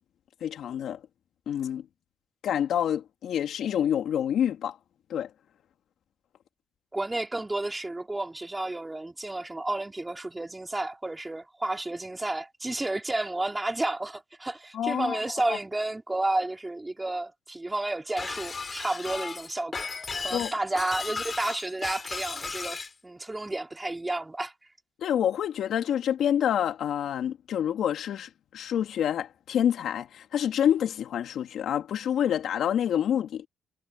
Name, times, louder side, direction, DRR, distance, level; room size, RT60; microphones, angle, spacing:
voice 1, 0.4-1.0 1.5-1.8 2.4-4.8 5.1-5.3 14.7-15.6 20.3-20.5 25.0-33.5, left 9 dB, 70° left, 3.2 m, -27 dB
voice 2, 6.9-19.9 20.2-24.5, right 2 dB, 15° right, 4.5 m, -31 dB
Shatter, 18.2-22.9, left 4 dB, 35° left, 4.7 m, -35 dB
cardioid pair, 90°, 0 cm